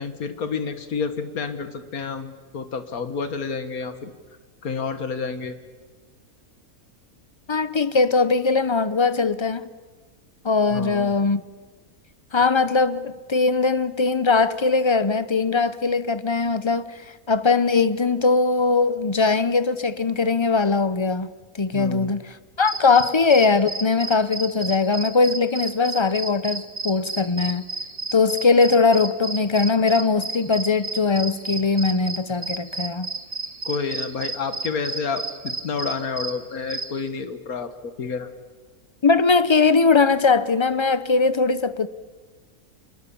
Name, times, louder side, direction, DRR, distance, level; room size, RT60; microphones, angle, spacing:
voice 1, 0.0-4.1 4.6-5.5 10.7-11.2 21.7-22.1 33.7-38.3, left 5 dB, 75° left, 2.0 m, -29 dB
voice 2, 7.5-9.6 10.4-11.4 12.3-17.0 17.3-21.3 21.6-27.6 28.1-33.1 39.0-41.9, left 4 dB, 30° left, 0.5 m, -20 dB
sound 1, 22.6-37.0, right 3 dB, 30° right, 1.2 m, -32 dB
26.5 x 21.5 x 7.1 m
omnidirectional pair, 1.6 m